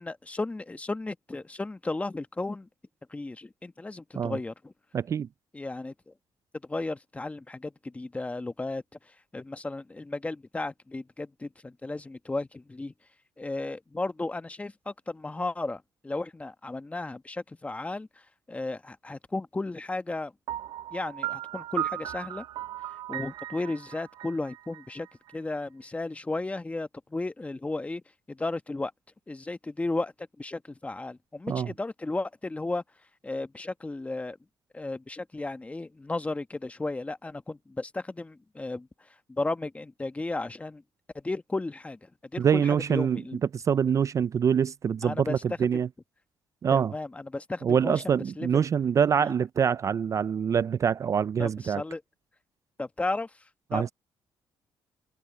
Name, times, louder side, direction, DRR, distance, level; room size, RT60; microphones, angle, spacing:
voice 1, 0.0-2.7 3.1-4.7 5.5-6.1 6.7-8.8 9.3-12.9 13.4-18.1 18.5-20.3 20.9-22.4 23.1-25.1 25.3-28.0 28.3-28.9 29.3-32.8 33.2-34.4 34.7-38.9 39.3-40.8 41.1-43.4 45.0-45.4 45.7-45.8 46.7-48.6 51.4-52.0 52.8-53.3 53.7-53.9, left 2 dB, 15° left, 1.1 m, -34 dB
voice 2, 4.9-5.3 31.5-31.7 42.4-43.2 43.5-45.9 46.6-46.9 47.6-51.8 53.7-53.9, right 7 dB, 40° right, 0.3 m, -25 dB
Piano, 20.5-25.3, right 13 dB, 70° right, 0.7 m, -36 dB
cardioid pair, 100°, 8 cm